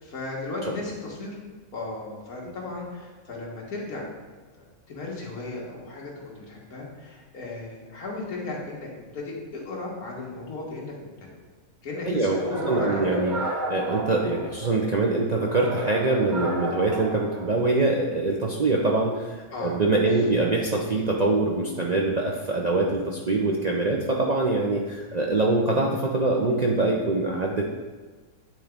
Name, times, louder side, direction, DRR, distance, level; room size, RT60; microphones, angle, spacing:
voice 1, 0.0-1.4 1.7-4.1 4.6-8.9 9.1-10.9 11.2-11.3 11.8-13.3 19.5-19.8 25.0-25.2, left 2 dB, 80° left, -3 dB, 1.9 m, -35 dB
voice 2, 12.0-27.6, right 2 dB, 70° right, -1 dB, 0.4 m, -24 dB
sound 1, 12.4-14.9 15.4-17.9, right 2 dB, 40° right, 0.8 m, -32 dB
9.2 x 3.8 x 3.5 m, 1.4 s
omnidirectional pair, 1.6 m